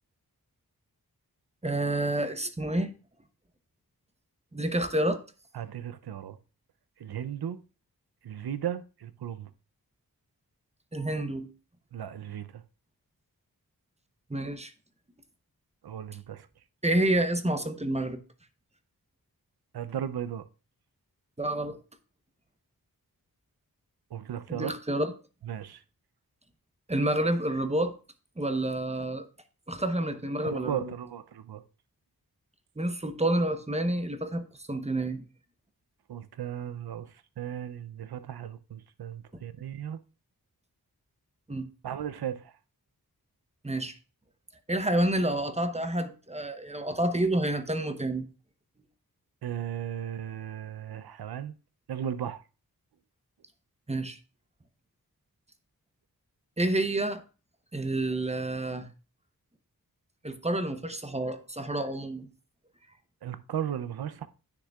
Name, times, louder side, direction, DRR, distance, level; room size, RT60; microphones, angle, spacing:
voice 1, 1.6-2.9 4.5-5.2 10.9-11.5 14.3-14.7 16.8-18.2 21.4-21.8 24.5-25.1 26.9-27.9 28.4-29.3 29.7-30.9 32.8-35.2 41.5-41.7 43.6-43.9 44.7-48.3 53.9-54.2 56.6-57.2 57.7-58.9 60.2-62.3, right 1 dB, 15° right, 0.8 m, -29 dB
voice 2, 5.5-6.4 7.0-7.6 8.2-9.5 11.9-12.6 15.8-16.5 19.7-20.4 24.1-24.7 25.4-25.8 30.4-31.6 36.1-40.0 41.8-42.5 49.4-51.6 51.9-52.4 63.2-64.3, right 9 dB, 80° right, 0.6 m, -36 dB
9.8 x 6.5 x 2.3 m
wide cardioid pair, 50°, 37 cm